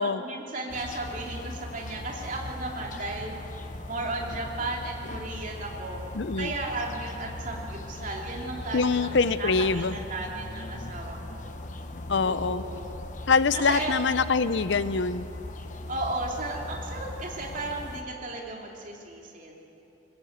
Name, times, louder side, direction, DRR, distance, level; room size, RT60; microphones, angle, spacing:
voice 1, 0.0-3.3 3.8-6.0 6.4-11.5 12.2-12.9 13.5-13.9 15.9-19.5, right 2 dB, 40° right, -1 dB, 2.9 m, -35 dB
sound 1, 0.7-18.0, left 2 dB, 40° left, 1.1 m, -39 dB
voice 2, 6.1-6.5 8.7-9.9 12.1-12.6 13.3-15.2, left 4 dB, 65° left, 14 dB, 0.6 m, -24 dB
22.0 x 19.5 x 8.1 m, 2.9 s
head